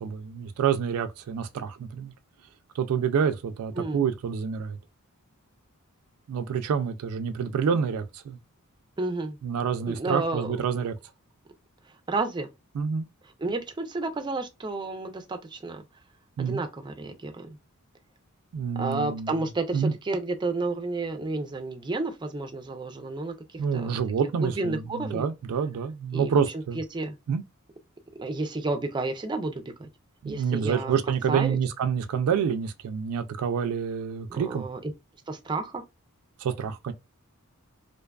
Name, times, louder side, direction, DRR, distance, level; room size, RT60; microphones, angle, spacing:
voice 1, 0.0-2.1 2.7-4.8 6.3-8.4 9.4-10.9 12.7-13.1 16.4-16.6 18.5-19.4 19.7-19.9 23.6-26.8 27.3-27.4 30.2-34.6 36.4-36.9, right 7 dB, 90° right, 0.3 m, -27 dB
voice 2, 9.0-9.4 9.9-10.6 12.1-12.5 13.4-15.8 16.4-17.6 18.8-23.9 24.4-25.3 26.1-26.4 26.7-27.2 28.2-29.9 30.2-31.0 31.3-31.6 34.3-34.9 35.3-35.8, right 3 dB, 20° right, 0.4 m, -31 dB
2.5 x 2.3 x 2.2 m
head